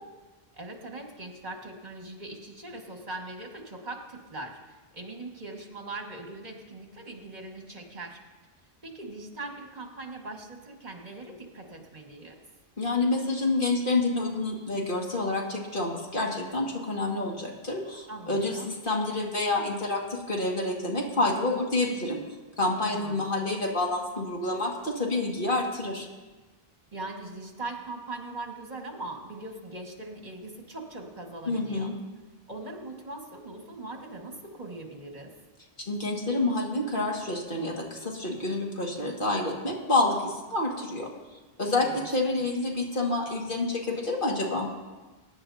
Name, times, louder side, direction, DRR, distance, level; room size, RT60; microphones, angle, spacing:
voice 1, 0.5-8.2 8.8-12.4 18.1-18.7 22.8-23.4 26.9-31.9 32.5-35.3 41.6-42.1 42.4-42.5, right 2 dB, 45° right, 1 dB, 2.0 m, -41 dB
voice 2, 12.8-22.2 22.6-26.1 31.5-31.9 35.8-41.1 41.6-44.7, left 2 dB, 55° left, -2 dB, 2.3 m, -28 dB
23.0 x 10.5 x 2.8 m, 1.2 s
omnidirectional pair, 1.1 m